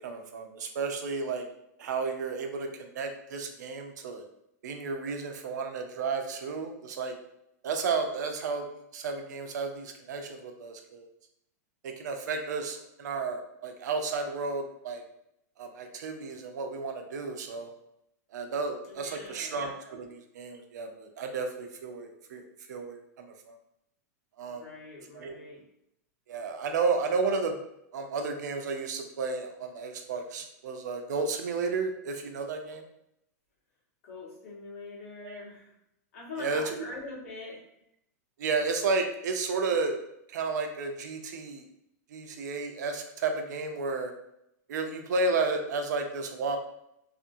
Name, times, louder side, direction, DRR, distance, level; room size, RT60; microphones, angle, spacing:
voice 1, 0.0-1.4 1.8-4.2 4.6-7.1 7.6-8.7 8.9-11.1 11.8-15.0 15.6-17.7 18.3-23.6 24.4-24.6 25.1-25.4 26.3-27.6 27.9-32.8 35.2-35.4 36.4-36.8 38.4-40.0 40.3-41.6 42.1-44.1 44.7-46.6, right 4 dB, 80° right, 5 dB, 0.5 m, -32 dB
voice 2, 18.9-19.6 24.5-25.6 34.0-35.7 36.1-37.6, left 3 dB, 55° left, -5 dB, 1.3 m, -43 dB
2.7 x 2.4 x 2.6 m, 0.80 s
supercardioid pair, 170°, 9 cm